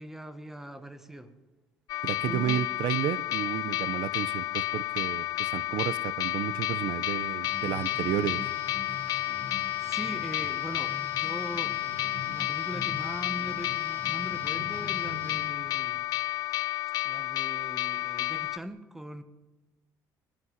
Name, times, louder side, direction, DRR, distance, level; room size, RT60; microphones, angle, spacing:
voice 1, 0.0-1.3 2.3-2.6 9.5-11.9 12.3-16.0 17.0-19.2, right 1 dB, 5° right, 10 dB, 1.6 m, -41 dB
sound 1, 1.9-18.6, left 16 dB, 65° left, 1.0 m, -31 dB
voice 2, 2.0-8.5, right 11 dB, 80° right, 17 dB, 1.0 m, -32 dB
Guitar, 7.4-15.5, equal, 35° right, 6.7 m, -43 dB
23.5 x 19.5 x 9.8 m, 1.1 s
cardioid pair, 170°, 7 cm